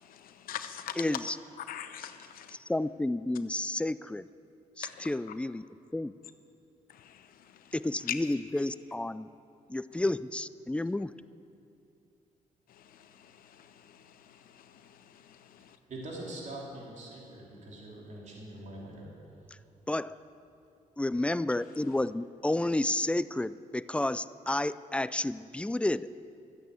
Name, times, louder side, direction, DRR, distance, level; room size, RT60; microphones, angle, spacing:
voice 1, 0.0-1.0 1.6-2.6 4.8-5.1 6.9-7.7 8.1-8.2 12.7-15.8, left 11 dB, 85° left, 10 dB, 0.8 m, -43 dB
voice 2, 1.0-1.4 2.5-4.3 4.8-5.6 5.9-6.1 7.7-9.3 9.7-11.2 19.9-20.2 21.0-26.1, left 1 dB, 10° left, 16 dB, 0.4 m, -31 dB
voice 3, 15.9-19.1, right 1 dB, 55° right, -3 dB, 3.0 m, -43 dB
13.5 x 9.1 x 8.4 m, 2.5 s
cardioid pair, 85°, 14 cm